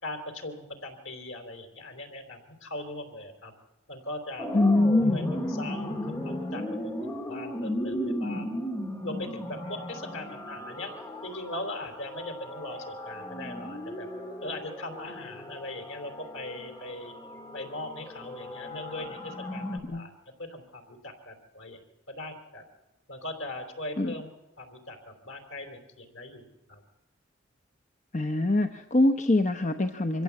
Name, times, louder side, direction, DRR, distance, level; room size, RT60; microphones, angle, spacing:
voice 1, 0.0-3.5 3.9-4.5 5.1-5.2 5.5-8.5 9.0-10.9 11.2-14.1 14.4-17.1 17.5-20.1 20.4-21.8 22.1-22.6 23.1-24.3 24.6-26.8, left 1 dB, 85° left, 6 dB, 3.5 m, -40 dB
sound 1, 4.4-19.8, left 1 dB, 20° left, 1.9 m, -36 dB
voice 2, 4.5-5.3 19.9-20.0 24.0-24.1 28.1-30.2, left 2 dB, 35° left, 7 dB, 0.9 m, -24 dB
24.5 x 15.5 x 8.3 m, 1.0 s
head